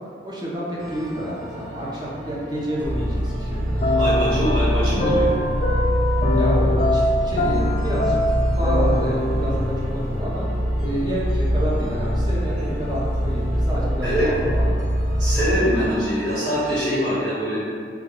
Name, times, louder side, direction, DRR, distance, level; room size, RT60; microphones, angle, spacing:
voice 1, 0.2-4.0 6.3-8.2 8.5-10.5 10.8-14.7, equal, 25° right, -6 dB, 0.6 m, -29 dB
sound 1, 0.8-16.8, right 1 dB, 45° right, 1.1 m, -39 dB
sound 2, 2.8-15.6, equal, 60° right, 0.8 m, -23 dB
sound 3, 3.8-10.2, left 1 dB, 40° left, 0.3 m, -24 dB
voice 2, 4.0-5.3 14.0-14.3 15.2-17.6, equal, 85° right, -15 dB, 1.2 m, -23 dB
2.2 x 2.2 x 3.6 m, 2.2 s
head